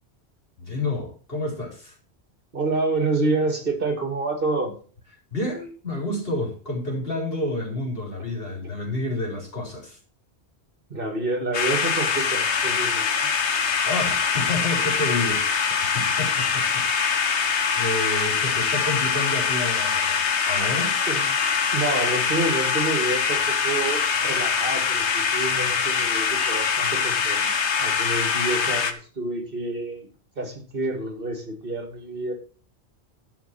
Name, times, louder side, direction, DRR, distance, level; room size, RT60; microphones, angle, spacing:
voice 1, 0.6-1.9 5.3-10.0 13.8-17.3 17.8-20.2 20.5-21.0, left 2 dB, 60° left, -1 dB, 4.3 m, -29 dB
voice 2, 2.5-4.8 10.9-13.3 21.1-21.3 21.7-30.1 30.4-32.3, right 2 dB, 55° right, 5 dB, 2.5 m, -28 dB
sound 1, 11.5-28.9, left 6 dB, 90° left, 1.4 m, -23 dB
12.0 x 5.6 x 5.9 m, 0.39 s
omnidirectional pair, 1.1 m